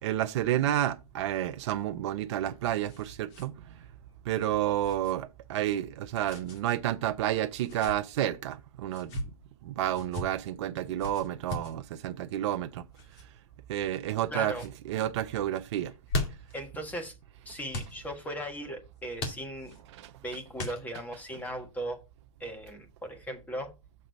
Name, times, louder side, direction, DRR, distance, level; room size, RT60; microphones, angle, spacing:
voice 1, 0.0-3.8 4.2-9.3 9.6-12.8 13.7-14.5 14.8-15.9 19.9-20.1, right 12 dB, 50° right, 0.6 m, -30 dB
sound 1, 2.1-3.5 3.8-3.9 4.8-5.1 6.2-6.6 7.5-8.0 8.9-9.3 9.9-10.3 11.0-11.8 12.9-13.2 13.9-14.3 14.5-14.7 15.8-16.6 17.7-18.0 19.2-19.8 20.6-21.1, left 2 dB, 45° left, 2.1 m, -37 dB
voice 2, 14.3-14.6 16.5-17.1 17.4-19.7 20.2-22.0 22.4-23.7, equal, 10° left, 1.3 m, -38 dB
6.6 x 3.9 x 5.3 m
hypercardioid pair, 125°, 18 cm